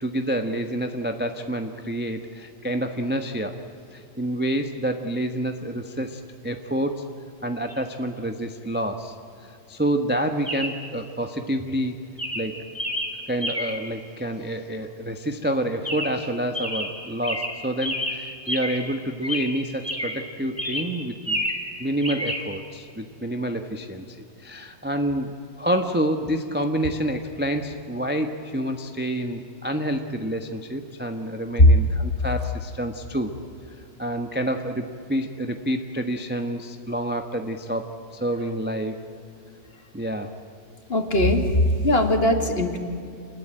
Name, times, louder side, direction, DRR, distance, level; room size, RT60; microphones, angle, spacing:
voice 1, 0.0-3.6 3.9-7.0 7.4-12.0 12.3-12.6 13.3-21.4 21.8-33.3 34.0-39.0 39.9-40.3, right 1 dB, 5° right, 5 dB, 0.9 m, -28 dB
Chirp tweet, 7.7-7.8 10.4-10.9 11.6-11.8 12.2-13.9 15.8-16.3 16.5-18.9 19.2-20.3 20.6-21.7 22.0-22.4, equal, 10° left, 2.7 m, -30 dB
voice 2, 40.9-42.8, left 1 dB, 35° left, 4 dB, 2.3 m, -20 dB
27.0 x 20.5 x 8.9 m, 2.4 s
omnidirectional pair, 1.9 m